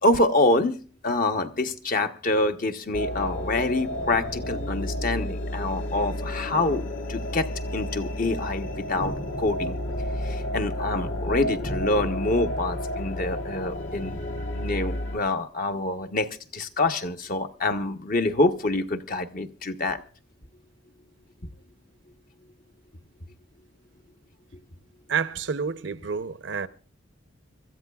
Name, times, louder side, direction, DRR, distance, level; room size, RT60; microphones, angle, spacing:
voice 1, 0.0-0.8 1.0-9.8 10.2-14.2 14.5-20.0, left 2 dB, 45° left, 0.9 m, -26 dB
sound 1, 2.9-15.2, left 1 dB, 70° left, 1.9 m, -31 dB
voice 2, 25.1-26.7, right 6 dB, 65° right, 0.7 m, -29 dB
25.5 x 14.0 x 2.3 m
head